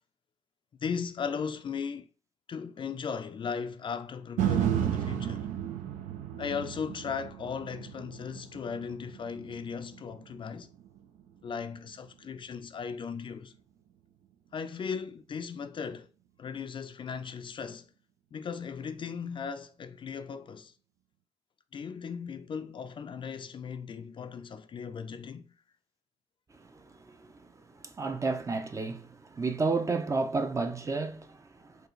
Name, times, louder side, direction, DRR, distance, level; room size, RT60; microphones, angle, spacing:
voice 1, 0.8-2.1 2.5-5.5 6.4-10.7 11.4-13.5 14.5-16.1 16.4-17.9 18.3-20.7 21.7-25.5, left 6 dB, 40° left, 0.4 m, -37 dB
Huge reverberated hit, 4.4-12.5 13.0-13.1, right 10 dB, 85° right, 0.5 m, -34 dB
voice 2, 26.6-27.3 27.8-31.7, right 3 dB, 25° right, 0.5 m, -32 dB
4.6 x 2.4 x 3.1 m
cardioid pair, 90°, 13 cm